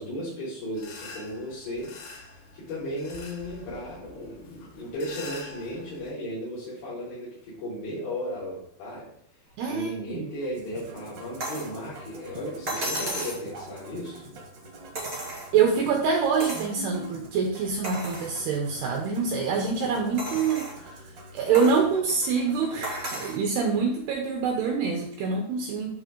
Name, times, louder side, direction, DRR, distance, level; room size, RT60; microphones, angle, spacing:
voice 1, 0.0-1.9 2.5-9.1 9.7-14.2, equal, 60° left, -10 dB, 6.0 m, -35 dB
sound 1, 0.7-6.1, left 3 dB, 85° left, 4.3 m, -45 dB
voice 2, 9.6-10.3 15.5-21.0 21.3-25.9, right 5 dB, 85° right, 2 dB, 2.4 m, -25 dB
Musical instrument, 10.4-23.3, right 1 dB, 60° right, 1.7 m, -45 dB
sound 2, 11.4-11.7 12.7-13.5 14.9-15.7 16.4-16.7 17.2-17.3 17.8-18.3 18.9-19.0 20.2-20.8 21.5-21.8 22.8-23.4 24.7-24.8, right 1 dB, 35° right, 1.8 m, -33 dB
12.5 x 4.4 x 3.8 m, 0.66 s
omnidirectional pair, 5.8 m